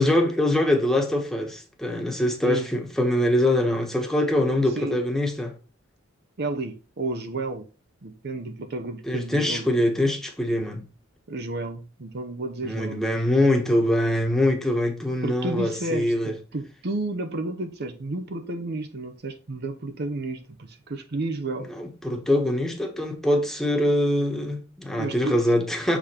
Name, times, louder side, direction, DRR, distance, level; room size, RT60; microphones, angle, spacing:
voice 1, 0.0-5.5 9.0-10.8 12.6-16.3 21.7-26.0, left 1 dB, ahead, 1.1 m, -23 dB
voice 2, 6.4-7.6 8.0-9.7 11.3-13.0 15.2-21.7 25.0-25.4, right 2 dB, 55° right, 0.7 m, -31 dB
7.1 x 3.6 x 4.3 m
head